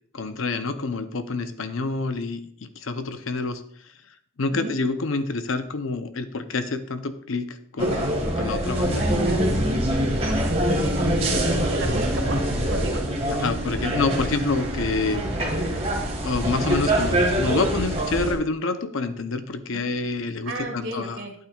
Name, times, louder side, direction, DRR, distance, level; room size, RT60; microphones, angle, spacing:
voice 1, 0.1-3.6 4.4-8.1 8.3-9.1 13.4-15.2 16.2-21.2, left 3 dB, 70° left, 10 dB, 0.7 m, -27 dB
sound 1, 7.8-18.3, right 1 dB, 30° right, 1.8 m, -24 dB
voice 2, 10.8-12.4 12.7-13.0 19.7-19.8 20.5-21.3, right 2 dB, 65° right, 3 dB, 1.8 m, -32 dB
12.0 x 8.7 x 2.4 m, 0.64 s
head